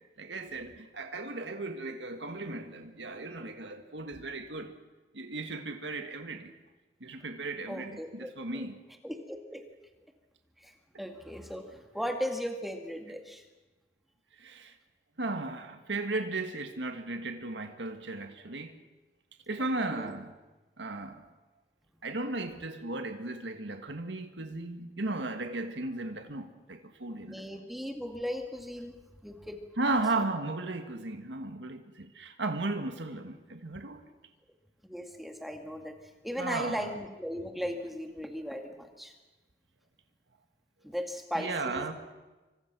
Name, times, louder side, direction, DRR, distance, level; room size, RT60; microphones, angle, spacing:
voice 1, 0.2-4.7 5.1-6.5 7.0-8.8 14.4-14.7 15.2-18.7 19.5-20.3 20.8-21.2 22.0-27.4 29.8-34.0 36.4-36.9 41.4-41.9, right 2 dB, 90° right, 1.8 m, -35 dB
voice 2, 7.7-8.7 9.0-9.6 10.6-10.7 11.0-13.4 19.9-20.1 27.2-28.9 29.2-29.6 34.9-36.0 36.2-39.1 40.8-41.9, equal, ahead, 2.1 m, -37 dB
27.5 x 24.5 x 6.2 m
head